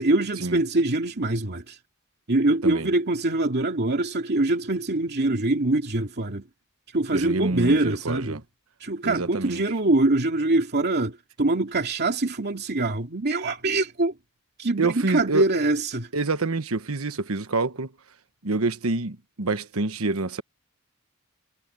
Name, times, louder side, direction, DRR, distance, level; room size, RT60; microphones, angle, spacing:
voice 1, 0.0-1.8 2.3-6.4 6.9-8.4 8.8-14.1 14.6-16.1, right 2 dB, 50° right, 2.6 m, -24 dB
voice 2, 7.1-8.4 9.0-9.6 14.8-15.5 16.1-17.9 18.4-20.4, right 3 dB, 75° right, 1.3 m, -27 dB
head